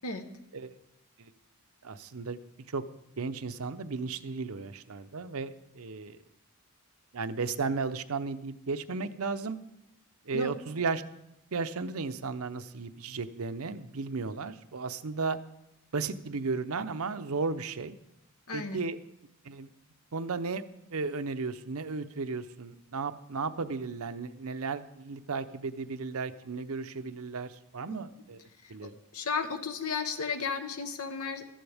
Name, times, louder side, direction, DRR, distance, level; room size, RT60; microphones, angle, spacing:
voice 1, 1.8-2.4 2.7-2.8 3.2-6.2 7.1-9.6 10.3-11.0 11.5-15.4 15.9-18.0 18.5-19.0 19.4-19.7 20.1-20.6 20.9-28.4 28.7-29.0, right 4 dB, 70° right, 11 dB, 0.7 m, -34 dB
voice 2, 18.5-18.8 27.9-28.0 28.6-31.5, left 4 dB, 75° left, 8 dB, 1.1 m, -34 dB
15.0 x 13.5 x 3.5 m, 0.85 s
head